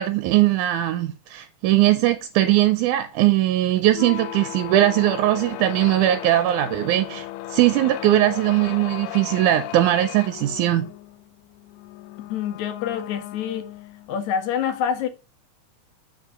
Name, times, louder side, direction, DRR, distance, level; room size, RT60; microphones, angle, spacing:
voice 1, 0.0-7.3 7.5-10.9, right 14 dB, 80° right, 2.1 m, -20 dB
sound 1, 3.9-14.2, left 15 dB, 90° left, 2.2 m, -36 dB
voice 2, 12.3-13.7 14.1-15.1, left 8 dB, 75° left, 2.0 m, -26 dB
7.6 x 5.0 x 5.0 m
omnidirectional pair, 3.6 m